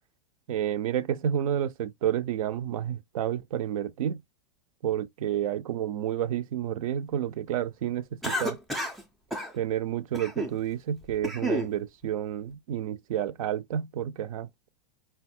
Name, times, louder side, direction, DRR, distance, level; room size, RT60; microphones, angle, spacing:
voice 1, 0.5-4.2 4.8-8.6 9.5-14.7, right 10 dB, 60° right, 0.5 m, -30 dB
Cough, 8.2-9.0 9.3-9.5 10.1-10.6 11.0-11.7, equal, ahead, 0.4 m, -31 dB
4.0 x 2.2 x 4.3 m
supercardioid pair, 170°, 21 cm